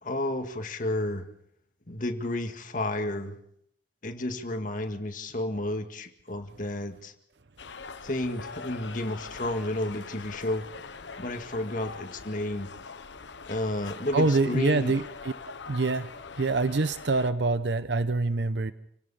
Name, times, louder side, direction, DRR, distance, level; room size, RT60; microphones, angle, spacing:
voice 1, 0.0-1.3 1.9-3.4 4.0-7.1 8.0-10.7 11.2-12.7 13.5-14.9, left 1 dB, 45° left, 6 dB, 1.9 m, -31 dB
sound 1, 7.6-17.3, left 5 dB, 85° left, 1.0 m, -43 dB
voice 2, 14.1-15.3 15.7-16.1 16.4-18.7, right 3 dB, 75° right, 13 dB, 0.7 m, -25 dB
28.0 x 17.0 x 5.6 m, 0.70 s
head